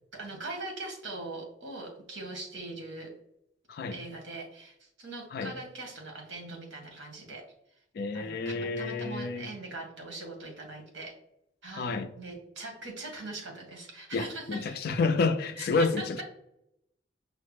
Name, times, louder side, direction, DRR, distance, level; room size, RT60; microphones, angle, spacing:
voice 1, 0.1-3.1 3.9-7.4 8.1-11.1 11.6-14.8 15.6-16.0, right 2 dB, 75° right, 1.2 m, -41 dB
voice 2, 7.9-9.5 11.7-12.1 14.1-16.2, left 4 dB, 55° left, 0.3 m, -29 dB
5.5 x 2.1 x 3.1 m
head